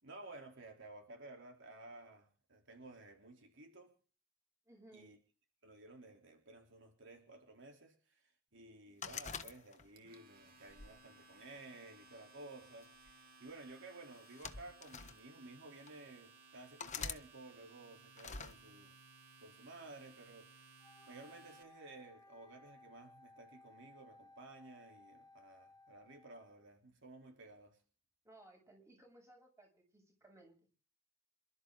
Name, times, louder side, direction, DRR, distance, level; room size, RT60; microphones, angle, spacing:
voice 1, 0.0-3.9 4.9-5.2 5.6-18.9 19.4-20.7 21.1-27.8, right 2 dB, 60° right, 3.5 m, -55 dB
voice 2, 4.6-5.1 28.2-30.7, right 1 dB, 15° right, 7.4 m, -61 dB
sound 1, 9.0-10.1 10.7-11.9 12.8-13.1 14.1-15.2 15.9-16.0 16.8-17.2 18.2-18.5, left 6 dB, 35° left, 1.4 m, -45 dB
Domestic sounds home sounds, 9.8-21.6, right 4 dB, 45° right, 2.8 m, -62 dB
Wind instrument woodwind instrument, 20.8-26.7, left 2 dB, 15° left, 1.3 m, -62 dB
27.5 x 13.0 x 3.9 m
head